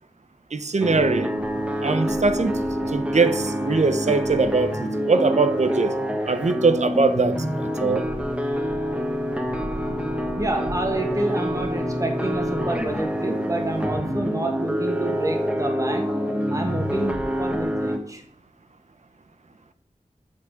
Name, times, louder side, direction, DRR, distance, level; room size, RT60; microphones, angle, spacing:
voice 1, 0.5-1.3 1.8-2.6 2.9-6.0 6.3-8.1, right 4 dB, 60° right, 0.8 m, -22 dB
sound 1, 0.8-18.0, equal, 10° right, 1.5 m, -26 dB
voice 2, 10.4-16.1 16.5-18.2, right 1 dB, 25° right, 1.7 m, -28 dB
8.3 x 7.4 x 5.2 m
wide cardioid pair, 80°, 14 cm